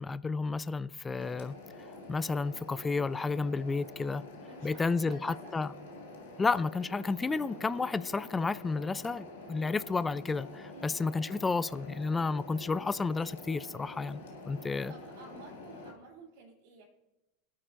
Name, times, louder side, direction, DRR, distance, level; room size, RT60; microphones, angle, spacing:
voice 1, 0.0-1.6 2.1-4.2 4.6-5.7 6.4-14.9, left 4 dB, 15° left, 0.4 m, -31 dB
sound 1, 1.1-15.9, left 2 dB, 85° left, 1.8 m, -47 dB
voice 2, 4.5-5.5 10.7-11.0 14.9-16.8, right 4 dB, 70° right, 3.4 m, -52 dB
24.5 x 8.7 x 2.6 m
hypercardioid pair, 100°, 0 cm